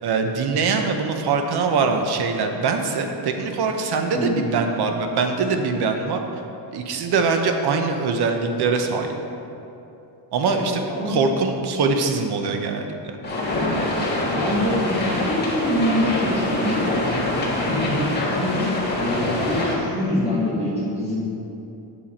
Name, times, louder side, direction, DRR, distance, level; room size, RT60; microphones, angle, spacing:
voice 1, 0.0-6.2 6.7-9.1 10.3-13.2, right 4 dB, 60° right, 5 dB, 0.9 m, -23 dB
sound 1, 13.2-19.7, left 1 dB, 25° left, 1.6 m, -24 dB
voice 2, 14.2-17.0 17.7-21.3, left 1 dB, 15° right, -9 dB, 1.6 m, -25 dB
8.6 x 6.9 x 4.3 m, 2.8 s
cardioid pair, 150°, 43 cm